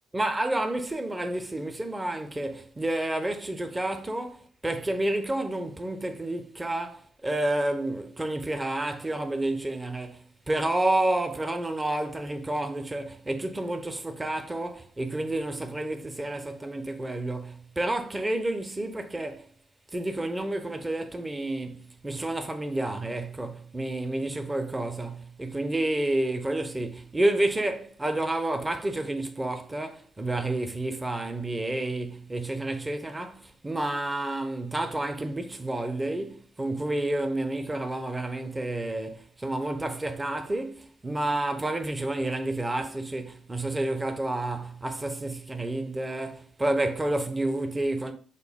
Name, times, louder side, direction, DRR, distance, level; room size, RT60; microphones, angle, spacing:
voice 1, 0.1-19.5 19.9-48.1, right 1 dB, 15° right, 0.5 m, -30 dB
3.9 x 2.2 x 3.5 m
cardioid pair, 90°, 0 cm